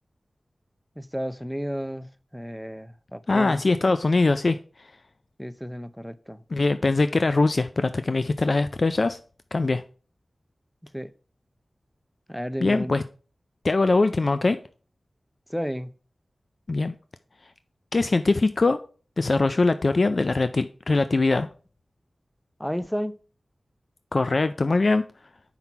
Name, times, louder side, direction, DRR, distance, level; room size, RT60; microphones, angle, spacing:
voice 1, 1.0-2.1 2.3-3.6 5.4-6.4 10.9-11.1 12.3-13.0 15.5-15.9 22.6-23.2, equal, ahead, 0.6 m, -32 dB
voice 2, 3.3-4.9 6.5-9.2 9.5-9.8 12.6-13.0 13.6-14.6 16.7-17.0 17.4-17.5 17.9-18.8 19.2-21.5 24.1-25.0, left 3 dB, 55° left, 0.4 m, -22 dB
5.9 x 5.6 x 4.5 m
wide cardioid pair, 50°, 0 cm